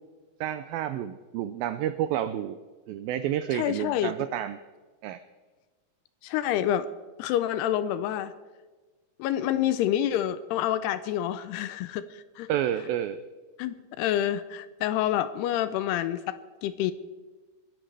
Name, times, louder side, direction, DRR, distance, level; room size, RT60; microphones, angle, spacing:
voice 1, 0.4-2.6 2.9-4.6 5.0-5.2 12.5-13.2, right 11 dB, 85° right, 12 dB, 2.1 m, -30 dB
voice 2, 3.5-4.1 6.2-6.9 7.2-8.3 9.2-12.5 13.6-16.9, left 11 dB, 80° left, 13 dB, 2.6 m, -28 dB
23.5 x 13.0 x 3.4 m, 1.3 s
omnidirectional pair, 4.8 m